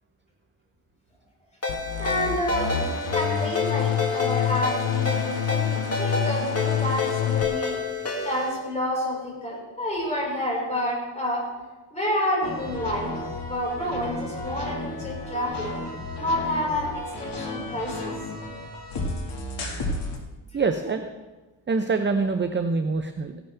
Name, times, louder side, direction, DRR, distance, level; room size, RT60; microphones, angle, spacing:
Ringtone, 1.6-8.5, left 3 dB, 30° left, 2.3 m, -29 dB
sound 1, 1.7-7.5, left 9 dB, 85° left, 1.0 m, -28 dB
voice 1, 2.0-7.8 8.2-11.5 11.9-13.1 13.5-15.8 16.2-18.2, left 1 dB, 15° left, -4 dB, 4.9 m, -29 dB
sound 2, 12.4-20.2, left 2 dB, 55° left, 2.1 m, -33 dB
voice 2, 20.5-21.1 21.7-23.4, right 4 dB, 25° right, 7 dB, 0.6 m, -25 dB
16.5 x 11.0 x 3.4 m, 1.2 s
wide cardioid pair, 120°, 47 cm